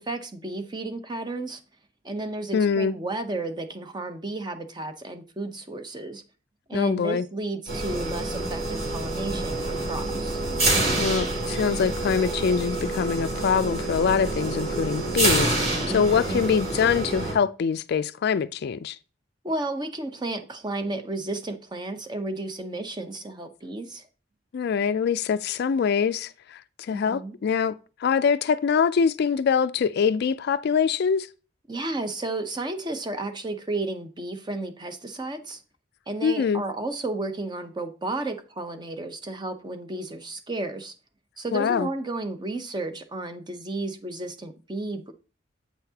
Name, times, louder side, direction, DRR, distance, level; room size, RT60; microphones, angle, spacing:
voice 1, 0.0-1.6 2.0-6.2 6.7-10.4 15.9-16.4 19.4-24.0 26.9-27.4 31.7-35.6 36.1-40.9 41.4-45.1, right 2 dB, 25° right, 0.7 m, -33 dB
voice 2, 2.5-2.9 6.7-7.2 10.9-19.0 24.5-27.7 28.0-31.3 36.2-36.6 41.5-41.9, left 6 dB, 55° left, 0.3 m, -24 dB
sound 1, 7.7-17.3, right 2 dB, 50° right, 3.2 m, -27 dB
8.2 x 5.8 x 2.8 m
head